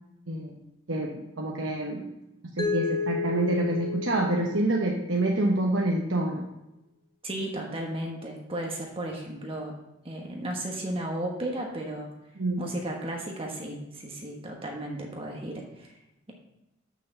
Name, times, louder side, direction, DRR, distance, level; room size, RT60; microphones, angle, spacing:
voice 1, 0.3-0.6 0.9-1.1 1.4-2.0 2.6-6.4 12.4-12.6, right 2 dB, 75° right, -1 dB, 1.1 m, -27 dB
Mallet percussion, 2.6-5.5, left 4 dB, 20° left, 1.0 m, -32 dB
voice 2, 7.2-9.8 10.0-12.1 12.6-15.9 16.3-16.4, right 1 dB, 30° right, 0 dB, 1.2 m, -34 dB
6.9 x 6.2 x 6.8 m, 0.92 s
head